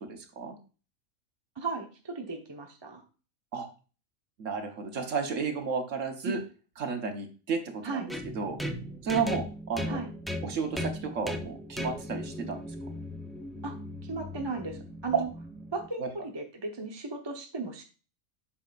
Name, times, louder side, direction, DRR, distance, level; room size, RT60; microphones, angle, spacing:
voice 1, 0.0-0.6 3.5-3.7 4.4-6.4 6.8-8.6 9.0-10.0 10.4-12.6 15.1-15.2 16.0-16.1, right 5 dB, 70° right, 5 dB, 1.5 m, -32 dB
voice 2, 1.6-3.0 6.2-6.4 7.8-8.1 9.9-10.1 13.6-13.7 14.0-15.3 15.7-17.8, right 3 dB, 20° right, 2 dB, 0.9 m, -36 dB
sound 1, 8.1-15.9, left 1 dB, ahead, 0.3 m, -38 dB
8.4 x 6.2 x 2.5 m, 0.36 s
omnidirectional pair, 1.4 m